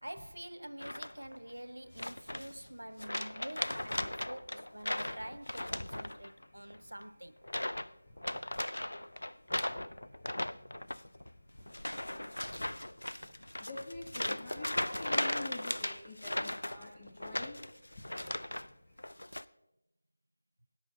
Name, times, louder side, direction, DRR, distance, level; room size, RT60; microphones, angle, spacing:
voice 1, 0.0-7.4, right 1 dB, 90° right, 0.5 m, -47 dB
sound 1, 0.8-1.4 2.0-2.7 3.0-6.4 6.7-7.0 7.4-7.9 8.2-18.7 19.0-19.4, left 1 dB, 80° left, 0.5 m, -37 dB
voice 2, 1.4-2.1 6.0-6.9 7.6-19.1, left 2 dB, 25° left, 1.3 m, -50 dB
19.0 x 10.0 x 2.8 m
figure-of-eight pair, 165°, 0 cm